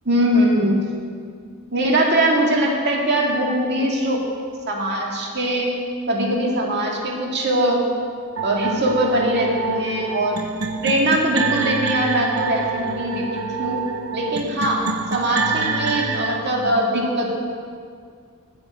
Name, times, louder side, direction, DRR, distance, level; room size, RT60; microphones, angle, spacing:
voice 1, 0.1-0.8 1.7-4.2 4.7-5.8 6.1-7.9 8.4-10.4 10.8-13.8 14.1-14.8 15.1-17.3, right 1 dB, 50° right, -1 dB, 2.0 m, -21 dB
sound 1, 8.4-16.4, right 4 dB, 70° right, 0.8 m, -27 dB
9.2 x 8.1 x 9.3 m, 2.1 s
head